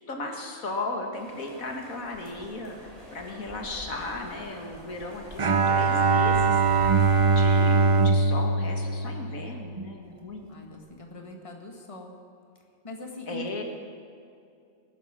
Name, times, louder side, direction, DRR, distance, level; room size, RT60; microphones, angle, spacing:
voice 1, 0.1-6.6 7.2-10.5 13.3-13.6, left 2 dB, 85° left, 2 dB, 2.2 m, -36 dB
sound 1, 1.1-8.1, equal, 25° right, 3.3 m, -45 dB
Bowed string instrument, 5.4-9.8, right 4 dB, 50° right, 0.4 m, -22 dB
voice 2, 10.5-12.1 12.8-13.6, equal, 25° left, 1 dB, 1.7 m, -42 dB
21.0 x 10.5 x 6.0 m, 2.4 s
omnidirectional pair, 1.4 m